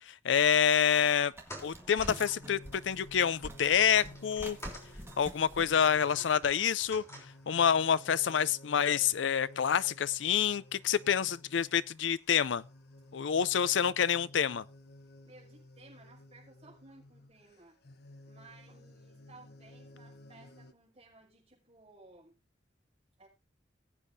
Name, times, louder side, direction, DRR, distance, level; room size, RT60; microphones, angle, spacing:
voice 1, 0.1-1.3 1.6-2.6 2.8-4.6 5.2-7.0 7.5-12.6 13.1-14.6, left 8 dB, 75° left, 0.5 m, -27 dB
sound 1, 0.8-13.2 13.5-13.6, equal, 15° left, 3.5 m, -54 dB
sound 2, 1.3-6.6, right 1 dB, 15° right, 1.8 m, -47 dB
sound 3, 2.0-20.7, left 1 dB, 55° left, 1.0 m, -55 dB
voice 2, 15.2-17.8 18.2-22.3 23.2-23.3, right 2 dB, 30° right, 6.1 m, -58 dB
20.5 x 8.4 x 2.7 m
head